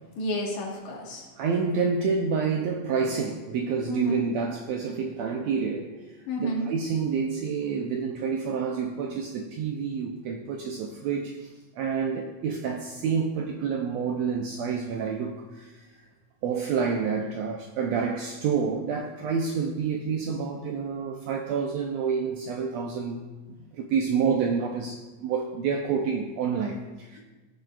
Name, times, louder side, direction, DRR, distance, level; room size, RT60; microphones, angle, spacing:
voice 1, 0.2-1.3 3.9-4.3 6.3-6.7, equal, 65° left, -2 dB, 2.9 m, -30 dB
voice 2, 1.4-5.9 6.4-16.0 16.4-23.2 23.7-27.2, right 6 dB, 85° right, 3 dB, 1.5 m, -28 dB
16.5 x 6.6 x 2.4 m, 1.2 s
omnidirectional pair, 3.6 m